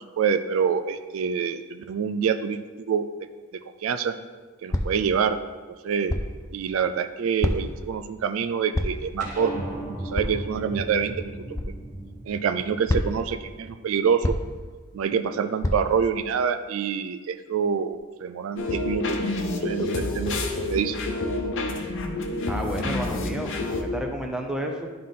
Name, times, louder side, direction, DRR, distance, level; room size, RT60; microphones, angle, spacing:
voice 1, 0.2-3.1 3.8-4.1 4.6-5.4 5.8-6.1 6.5-9.5 10.0-11.3 12.3-14.3 14.9-19.2 19.6-20.4 20.6-21.0, right 6 dB, 70° right, 9 dB, 0.4 m, -26 dB
sound 1, 4.7-5.1 6.1-6.4 7.4-7.8 8.7-9.1 10.1-10.5 11.6-11.8 12.9-13.3 14.2-14.7 15.6-16.0, left 1 dB, 15° left, 0.3 m, -27 dB
sound 2, 9.2-13.9, right 1 dB, 40° right, 1.4 m, -36 dB
sound 3, 18.6-23.8, left 2 dB, 60° left, 0.8 m, -28 dB
voice 2, 22.5-24.9, equal, 5° right, 1 dB, 0.7 m, -31 dB
11.0 x 3.8 x 3.7 m, 1.4 s
head